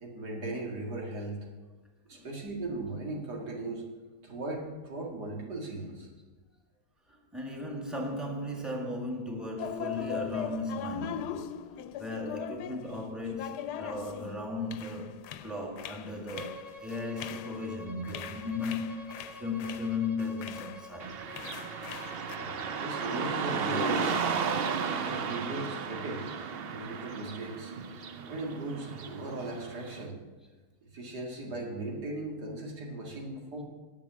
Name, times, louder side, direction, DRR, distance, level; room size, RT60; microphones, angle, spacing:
voice 1, 0.0-1.4 2.1-3.8 4.2-6.1 22.3-24.2 25.0-26.3 26.7-27.7 28.3-30.2 30.8-33.6, right 2 dB, 80° right, 2.6 m, -38 dB
voice 2, 7.1-11.5 12.0-21.2, left 2 dB, ahead, 1.6 m, -36 dB
sound 1, 9.6-20.9 21.2-22.4, left 10 dB, 80° left, 1.2 m, -40 dB
Bowed string instrument, 16.3-24.4, left 1 dB, 30° right, 0.9 m, -48 dB
Car passing by / Traffic noise roadway noise, 21.0-30.0, right 5 dB, 60° right, 0.6 m, -34 dB
10.5 x 7.1 x 7.3 m
omnidirectional pair, 1.7 m